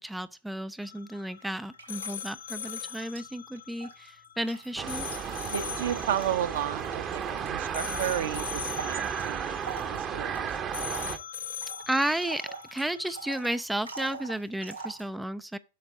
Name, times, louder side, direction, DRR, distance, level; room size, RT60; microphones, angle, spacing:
voice 1, 0.0-5.1 11.9-15.6, right 1 dB, 5° right, 0.3 m, -33 dB
sound 1, 0.8-13.3, left 10 dB, 60° left, 0.6 m, -42 dB
sound 2, 1.4-3.3 3.6-15.1, right 4 dB, 85° right, 3.2 m, -45 dB
sound 3, 4.8-11.2, right 7 dB, 30° right, 0.8 m, -34 dB
voice 2, 5.4-9.6 9.9-10.8, right 10 dB, 60° right, 0.8 m, -33 dB
7.8 x 6.0 x 3.7 m
figure-of-eight pair, 90°, 0 cm